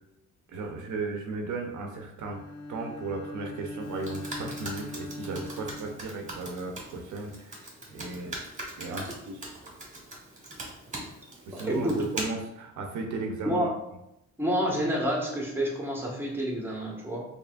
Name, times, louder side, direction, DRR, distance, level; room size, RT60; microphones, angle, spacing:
voice 1, 0.5-8.4 8.8-9.5 11.5-13.7, right 3 dB, 75° right, 2 dB, 0.7 m, -36 dB
Bowed string instrument, 2.2-6.8, left 2 dB, 55° left, 0.6 m, -41 dB
Computer keyboard, 3.8-12.2, right 2 dB, 25° right, 1.3 m, -41 dB
voice 2, 11.5-12.0 13.4-13.7 14.4-17.3, equal, 5° right, -3 dB, 1.2 m, -28 dB
4.4 x 3.1 x 2.4 m, 0.85 s
cardioid pair, 90°, 30 cm